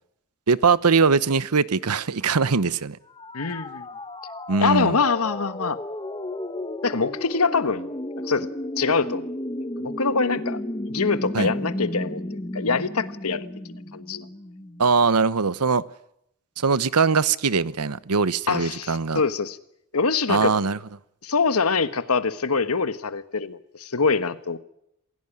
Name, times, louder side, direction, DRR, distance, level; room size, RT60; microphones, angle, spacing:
voice 1, 0.5-3.0 4.5-5.0 11.3-11.5 14.8-15.8 16.6-19.2 20.3-20.8, right 5 dB, 85° right, 0.9 m, -21 dB
sound 1, 3.1-14.9, left 1 dB, 20° left, 1.4 m, -33 dB
voice 2, 3.3-3.9 4.6-5.8 6.8-7.9 8.2-8.5 8.8-9.3 9.8-10.6 10.9-12.2 12.5-13.5 13.9-14.3 18.5-19.6 19.9-20.5 21.2-24.6, left 4 dB, 70° left, 1.3 m, -24 dB
27.5 x 16.5 x 10.0 m
head